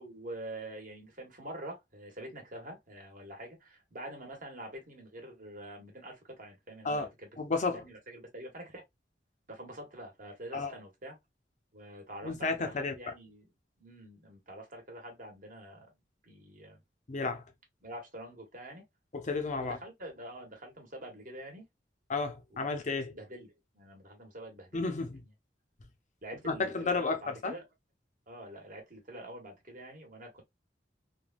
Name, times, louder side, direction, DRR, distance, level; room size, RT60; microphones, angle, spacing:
voice 1, 0.0-7.3 7.8-8.8 9.5-11.2 11.7-13.5 13.8-15.9 16.2-16.8 17.8-18.8 19.6-21.7 22.5-22.8 23.1-25.1 26.2-27.6 28.3-30.4, right 1 dB, 50° right, 1.2 m, -46 dB
voice 2, 7.4-7.8 10.5-10.7 12.2-13.1 17.1-17.4 19.1-19.8 22.1-23.1 24.7-25.2 26.4-27.5, left 3 dB, 45° left, 0.6 m, -32 dB
3.3 x 2.2 x 2.3 m
head